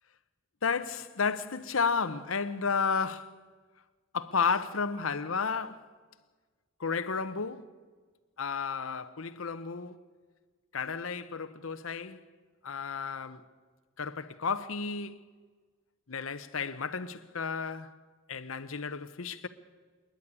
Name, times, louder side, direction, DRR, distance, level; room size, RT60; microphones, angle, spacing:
voice 1, 0.6-3.4 4.1-5.9 6.8-7.7 8.4-10.0 10.7-12.2 12.6-13.4 14.0-15.2 16.1-18.0 18.3-19.5, left 5 dB, 75° left, 0.9 m, -32 dB
27.5 x 10.5 x 9.7 m
head